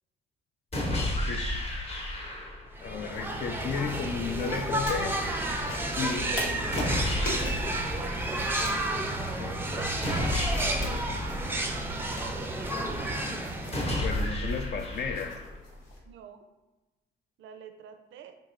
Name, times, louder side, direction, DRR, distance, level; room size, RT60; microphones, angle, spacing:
sound 1, 0.7-2.7 6.7-8.7 10.0-12.0 13.7-15.7, left 1 dB, 30° left, 0.8 m, -32 dB
sound 2, 2.7-14.4, right 1 dB, 10° right, 0.4 m, -31 dB
voice 1, 2.8-5.2 6.0-7.0 9.4-9.6 10.5-11.2 13.2-13.7 14.0-15.4, left 6 dB, 55° left, 6 dB, 0.4 m, -35 dB
sound 3, 3.1-16.0, left 2 dB, 90° left, 1.0 m, -44 dB
voice 2, 5.9-6.8 7.5-7.9 16.0-16.4 17.4-18.4, right 7 dB, 75° right, 7 dB, 0.4 m, -49 dB
3.6 x 3.0 x 2.4 m, 1.1 s
cardioid pair, 90°, 20 cm